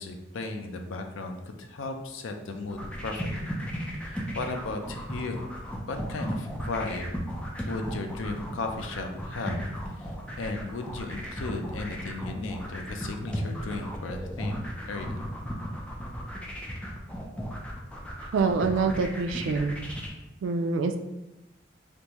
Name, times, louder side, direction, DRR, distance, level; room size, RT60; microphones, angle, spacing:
voice 1, 0.0-5.5 5.9-7.1 7.7-15.3, left 3 dB, 90° left, 5 dB, 0.4 m, -35 dB
sound 1, 2.6-20.1, equal, 5° left, 0.4 m, -35 dB
voice 2, 18.3-19.8 20.4-21.0, right 4 dB, 75° right, 7 dB, 0.3 m, -26 dB
3.5 x 2.6 x 2.9 m, 0.94 s
head